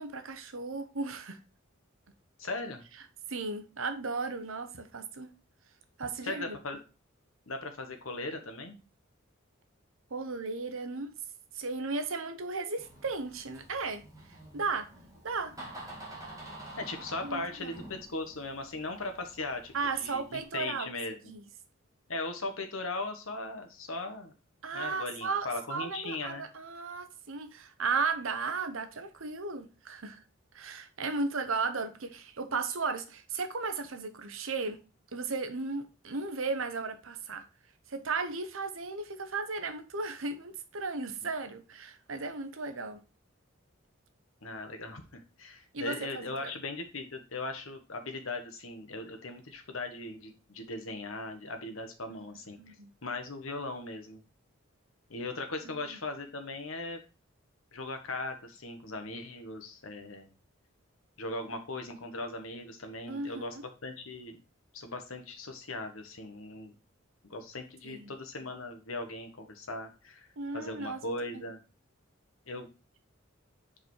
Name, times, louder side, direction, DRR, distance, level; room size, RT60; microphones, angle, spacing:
voice 1, 0.0-1.4 3.3-5.3 6.0-6.5 10.1-11.1 11.5-14.0 14.5-14.9 15.2-15.5 17.2-17.8 19.7-20.9 21.3-21.4 24.6-30.2 30.5-34.8 35.1-37.4 37.9-43.0 45.7-46.5 52.1-52.2 52.6-52.9 55.6-56.0 63.1-63.7 67.8-68.1 70.4-71.5, right 4 dB, 80° right, 1.0 m, -35 dB
voice 2, 2.4-2.8 6.2-6.8 7.5-8.8 16.8-21.3 22.1-24.3 24.7-26.5 44.4-52.7 53.0-54.2 55.1-57.0 57.7-60.3 61.2-64.4 64.7-66.7 67.2-70.3 70.5-71.6 72.5-72.7, left 2 dB, 85° left, 1.4 m, -39 dB
Door, 12.8-20.4, right 1 dB, 15° right, 1.9 m, -49 dB
5.0 x 5.0 x 4.6 m
head